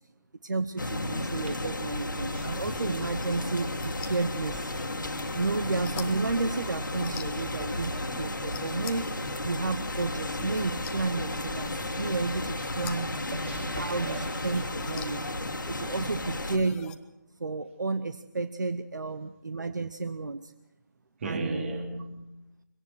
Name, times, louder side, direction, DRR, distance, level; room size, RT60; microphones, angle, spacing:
voice 1, 0.4-4.7 5.3-13.1 13.8-15.3 15.7-17.0 17.4-20.5 21.2-21.7, right 3 dB, 70° right, 11 dB, 0.9 m, -32 dB
sound 1, 0.8-16.6, left 1 dB, 85° left, 1.8 m, -33 dB
sound 2, 2.3-17.0, left 7 dB, 10° left, 0.7 m, -46 dB
voice 2, 13.3-14.6 21.2-22.4, right 2 dB, 40° right, 4 dB, 3.3 m, -36 dB
24.0 x 17.5 x 6.3 m, 0.92 s
figure-of-eight pair, 150°, 10 cm